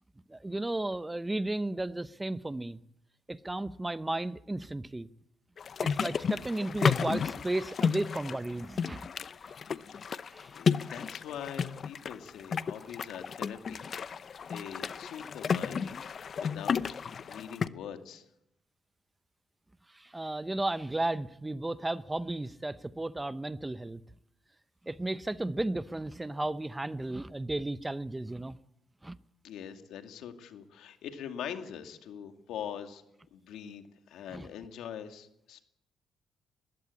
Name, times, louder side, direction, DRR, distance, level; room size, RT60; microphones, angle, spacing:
voice 1, 0.3-2.8 3.3-5.1 5.8-9.0 10.3-10.5 19.9-24.0 24.9-28.6 29.0-29.2 34.3-34.5, right 2 dB, 15° right, 0.7 m, -34 dB
sound 1, 5.6-17.7, left 6 dB, 50° left, 0.7 m, -32 dB
voice 2, 10.5-13.8 14.2-15.9 16.3-17.0 17.3-18.3 29.4-33.0 33.3-35.6, left 9 dB, 80° left, 2.3 m, -43 dB
20.5 x 15.5 x 8.6 m
cardioid pair, 90°, 0 cm